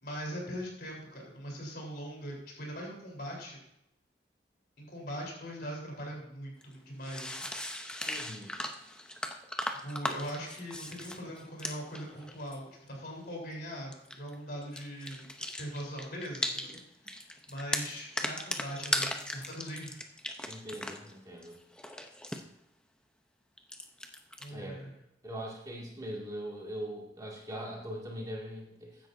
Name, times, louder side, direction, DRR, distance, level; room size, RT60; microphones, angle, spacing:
voice 1, 0.0-3.6 4.8-7.5 9.8-15.2 15.6-16.7 17.0-20.1 24.4-24.9, equal, 55° left, -1 dB, 3.8 m, -41 dB
sound 1, 6.6-6.7 7.0-12.6 13.9-14.3 14.6-16.8 17.1-21.1 21.4-22.4 23.6-24.5, left 1 dB, 5° left, 0.7 m, -37 dB
voice 2, 8.1-8.6 20.5-21.6 24.5-24.8 25.2-29.1, equal, 20° right, -3 dB, 2.2 m, -41 dB
14.5 x 10.0 x 2.7 m, 0.83 s
head